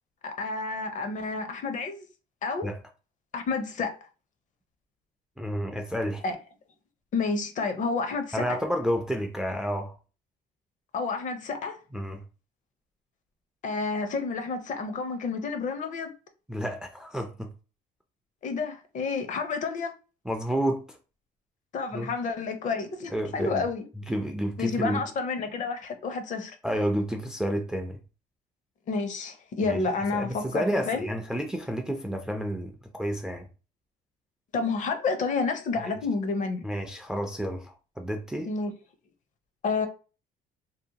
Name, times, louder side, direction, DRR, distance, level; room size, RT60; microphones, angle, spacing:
voice 1, 0.2-2.1 2.4-2.7 3.3-4.0 6.2-6.4 7.1-8.6 10.9-11.8 13.6-16.1 18.4-19.9 21.7-23.8 24.6-26.5 28.9-31.1 34.5-36.6 38.4-38.7 39.6-39.9, left 4 dB, 50° left, 0.5 m, -30 dB
voice 2, 5.4-6.2 8.3-9.9 11.9-12.2 16.5-17.5 20.3-21.0 21.9-22.1 23.1-23.6 24.0-25.0 26.6-28.0 29.6-29.8 30.1-33.5 35.8-35.9 36.6-38.5, equal, 5° right, 0.3 m, -30 dB
2.7 x 2.0 x 2.7 m
cardioid pair, 110°, 17 cm